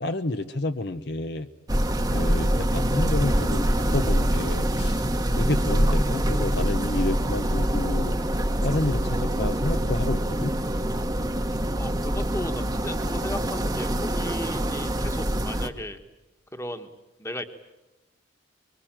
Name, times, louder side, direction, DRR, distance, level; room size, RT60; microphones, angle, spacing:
voice 1, 0.0-1.5 2.1-5.1 5.3-8.2 8.6-10.5, left 2 dB, 55° left, 9 dB, 0.8 m, -29 dB
sound 1, 1.7-15.7, right 1 dB, 20° right, 1.1 m, -25 dB
voice 2, 11.7-16.0 16.5-16.9 17.2-17.4, left 1 dB, 15° left, 7 dB, 1.5 m, -36 dB
25.5 x 23.0 x 9.0 m, 1.0 s
head